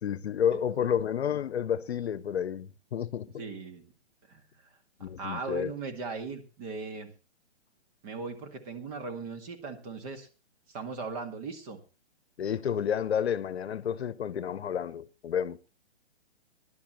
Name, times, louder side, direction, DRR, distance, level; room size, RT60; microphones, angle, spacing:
voice 1, 0.0-3.4 5.0-5.7 12.4-15.6, left 8 dB, 65° left, 0.9 m, -30 dB
voice 2, 3.4-3.9 4.3-4.4 5.0-7.1 8.0-10.3 10.7-11.8, right 4 dB, 35° right, 2.0 m, -38 dB
21.0 x 11.5 x 3.0 m
hypercardioid pair, 145°, 34 cm